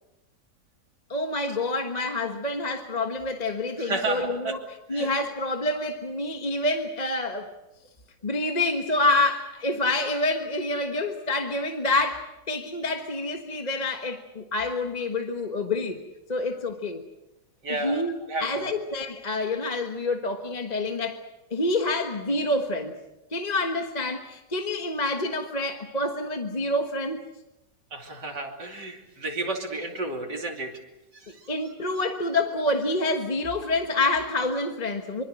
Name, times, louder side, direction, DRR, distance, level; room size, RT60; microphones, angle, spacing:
voice 1, 1.1-4.6 4.9-7.5 8.2-16.0 16.3-17.0 17.8-18.1 18.4-21.2 21.5-22.9 23.3-27.2 31.5-35.2, left 2 dB, 25° left, 4 dB, 1.4 m, -27 dB
voice 2, 3.8-4.6 4.9-5.1 17.6-18.8 27.9-30.7 31.1-31.5 31.9-32.0, right 3 dB, 70° right, 2 dB, 3.5 m, -32 dB
25.0 x 24.5 x 6.4 m, 0.93 s
omnidirectional pair, 1.9 m